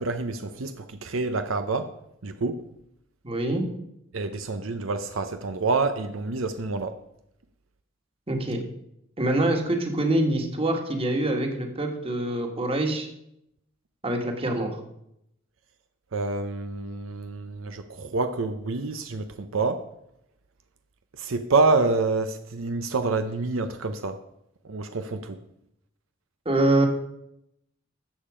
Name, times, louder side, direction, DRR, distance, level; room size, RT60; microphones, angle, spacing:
voice 1, 0.0-1.9 2.2-2.6 4.1-6.9 16.1-19.8 21.2-24.2 24.6-25.4, right 3 dB, 80° right, 9 dB, 0.7 m, -27 dB
voice 2, 3.2-3.6 8.3-8.6 9.2-13.1 14.0-14.7 26.5-26.9, right 1 dB, 30° right, 4 dB, 1.7 m, -25 dB
13.5 x 7.5 x 5.0 m, 0.79 s
head